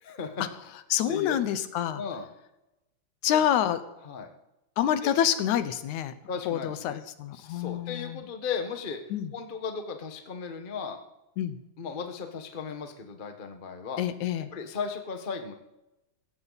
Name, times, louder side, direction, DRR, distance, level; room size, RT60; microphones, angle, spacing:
voice 1, 0.0-0.4 1.1-1.4 1.9-2.3 3.3-3.5 4.0-4.3 5.0-5.1 6.3-7.0 7.3-9.0 9.3-11.0 11.8-14.0 14.5-15.5, left 6 dB, 60° left, 5 dB, 0.5 m, -36 dB
voice 2, 0.9-2.0 3.2-3.8 4.8-6.1 6.5-8.2 9.1-9.3 11.4-11.6 14.0-14.5, left 10 dB, 80° left, 12 dB, 2.3 m, -27 dB
17.0 x 15.0 x 4.1 m, 0.95 s
omnidirectional pair, 3.4 m